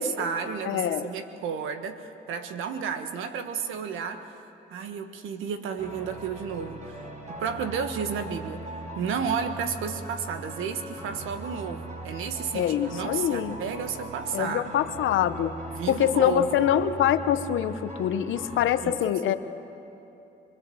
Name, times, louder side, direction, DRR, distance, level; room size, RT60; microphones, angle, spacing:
voice 1, 0.0-4.4 4.7-8.6 8.9-14.8 15.7-16.7 18.8-19.0 19.3-19.4, right 6 dB, 85° right, 8 dB, 1.5 m, -32 dB
voice 2, 0.6-1.1 12.5-13.6 14.3-15.5 15.9-19.3, left 10 dB, 80° left, 11 dB, 1.0 m, -24 dB
sound 1, 5.8-18.7, right 1 dB, 40° right, 5.2 m, -40 dB
24.0 x 22.5 x 7.9 m, 2.9 s
cardioid pair, 90°, 20 cm